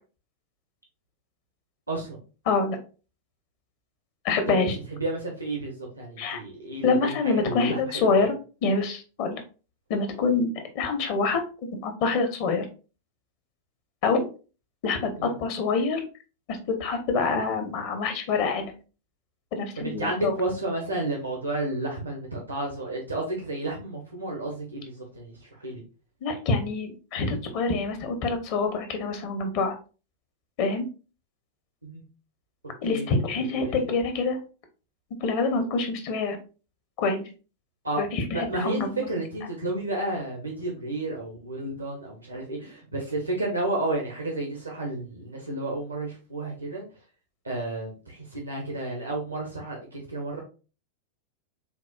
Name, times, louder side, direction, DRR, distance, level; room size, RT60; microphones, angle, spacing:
voice 1, 1.9-2.2 4.5-4.7 5.0-8.3 15.2-15.3 19.8-25.8 31.8-32.0 32.9-33.1 33.5-33.9 37.8-38.0 38.3-46.8 47.4-50.4, right 2 dB, 80° right, 0 dB, 0.9 m, -31 dB
voice 2, 2.5-2.8 4.2-4.8 6.2-6.4 6.8-8.3 8.6-9.4 9.9-11.4 11.7-12.7 14.0-14.3 14.8-16.0 16.5-18.7 19.5-20.3 26.2-29.8 30.6-30.9 32.8-34.4 35.2-36.4 37.0-37.3 38.0-39.1, left 4 dB, 45° left, 6 dB, 0.9 m, -26 dB
6.9 x 2.4 x 2.3 m, 0.35 s
figure-of-eight pair, 90°, 0 cm